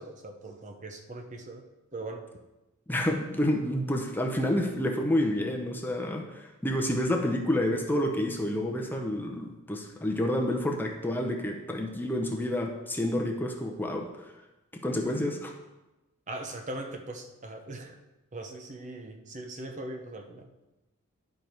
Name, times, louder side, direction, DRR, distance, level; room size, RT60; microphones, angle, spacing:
voice 1, 0.0-1.6 1.9-2.2 16.3-18.0 18.3-20.5, right 2 dB, 35° right, 5 dB, 0.7 m, -40 dB
voice 2, 2.9-14.3 14.7-15.5, left 1 dB, 10° left, 1 dB, 0.7 m, -29 dB
11.0 x 5.2 x 4.5 m, 1.0 s
head